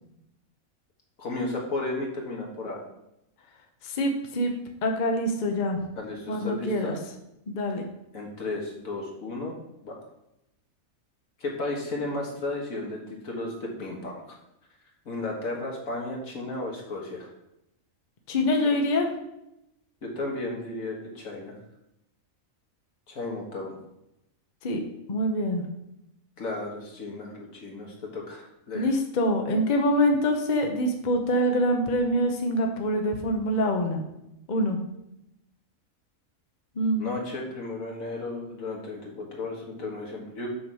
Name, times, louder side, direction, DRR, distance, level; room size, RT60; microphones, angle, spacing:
voice 1, 1.2-2.8 6.0-7.0 8.1-9.5 9.8-9.9 11.4-14.4 15.1-17.3 20.0-21.6 23.1-23.8 26.4-28.9 37.0-40.5, left 2 dB, 80° left, -1 dB, 2.0 m, -34 dB
voice 2, 3.8-4.5 4.8-5.8 6.3-6.9 7.5-7.8 18.3-19.1 24.6-24.8 25.1-25.6 28.7-34.0 34.5-34.8 36.8-37.0, equal, 40° left, 3 dB, 0.9 m, -25 dB
6.2 x 5.9 x 4.7 m, 0.85 s
omnidirectional pair, 1.4 m